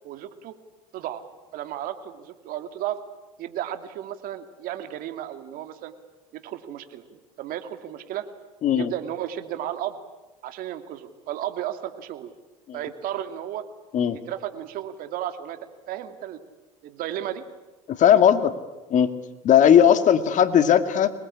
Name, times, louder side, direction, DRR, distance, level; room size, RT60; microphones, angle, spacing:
voice 1, 0.0-0.5 0.9-1.2 1.5-3.0 3.4-5.9 6.3-8.3 8.7-10.0 10.4-12.3 12.7-13.6 14.3-15.6 15.9-16.4 16.8-17.4, right 11 dB, 60° right, 9 dB, 2.4 m, -33 dB
voice 2, 8.6-8.9 12.7-12.8 13.9-14.2 17.9-18.5 18.9-19.1 19.4-21.1, left 9 dB, 45° left, 11 dB, 2.2 m, -18 dB
24.5 x 20.5 x 9.9 m, 1.1 s
hypercardioid pair, 80°, 17 cm